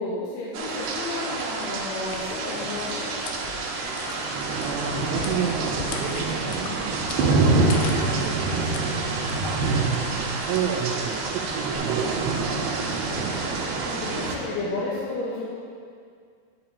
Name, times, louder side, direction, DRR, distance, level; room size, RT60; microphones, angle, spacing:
voice 1, 0.0-3.1 13.8-15.5, left 2 dB, 75° left, -8 dB, 3.2 m, -32 dB
sound 1, 0.5-14.4, right 3 dB, 70° right, 2.8 m, -26 dB
sound 2, 2.0-11.8, left 5 dB, 90° left, 3.0 m, -40 dB
voice 2, 4.5-7.0 8.0-9.0 10.2-12.4 13.0-13.5, right 7 dB, 90° right, -4 dB, 3.0 m, -31 dB
11.5 x 10.0 x 2.9 m, 2.2 s
omnidirectional pair, 4.9 m